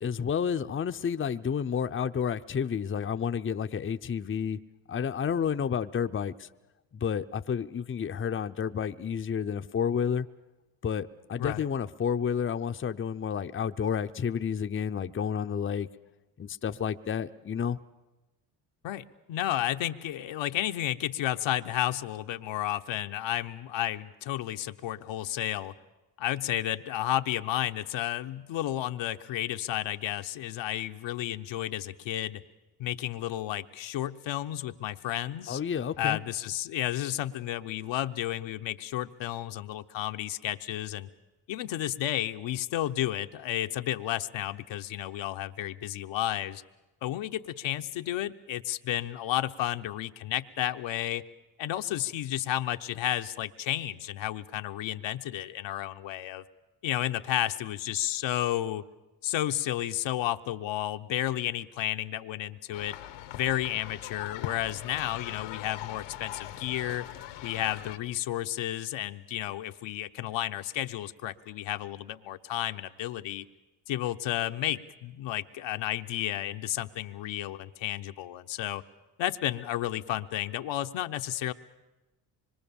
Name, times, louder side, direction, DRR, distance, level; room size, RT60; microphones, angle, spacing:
voice 1, 0.0-4.6 4.9-6.5 6.9-10.3 10.8-15.9 16.4-17.8 35.5-36.2, left 7 dB, 25° left, 8 dB, 0.7 m, -30 dB
voice 2, 18.8-25.7 26.2-32.4 32.8-35.6 36.0-41.1 41.5-46.6 47.0-51.2 51.6-56.4 56.8-58.8 59.2-63.0 63.3-67.1 67.4-73.4 73.9-78.8 79.2-81.5, left 13 dB, 70° left, 7 dB, 1.0 m, -32 dB
sound 1, 62.7-68.0, left 13 dB, 90° left, 1.4 m, -41 dB
25.0 x 22.5 x 7.1 m, 1.1 s
supercardioid pair, 70°, 47 cm